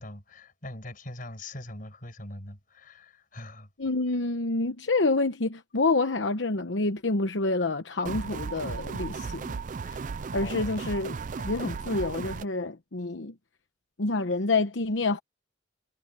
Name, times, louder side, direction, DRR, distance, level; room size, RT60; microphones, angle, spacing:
voice 1, 0.0-3.7 10.4-10.8, left 1 dB, 45° left, 6.1 m, -42 dB
voice 2, 3.8-10.0 10.3-13.3 14.0-15.2, left 3 dB, 80° left, 1.0 m, -28 dB
sound 1, 8.1-12.5, right 5 dB, 45° right, 0.4 m, -35 dB
head